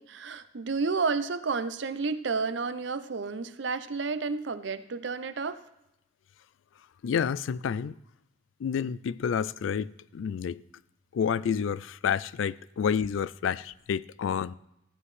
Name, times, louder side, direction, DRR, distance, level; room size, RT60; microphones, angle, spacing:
voice 1, 0.0-5.6, right 4 dB, 65° right, 0.6 m, -31 dB
voice 2, 7.0-8.0 8.6-10.6 11.1-14.5, left 7 dB, 85° left, 0.3 m, -29 dB
15.0 x 9.6 x 3.2 m
head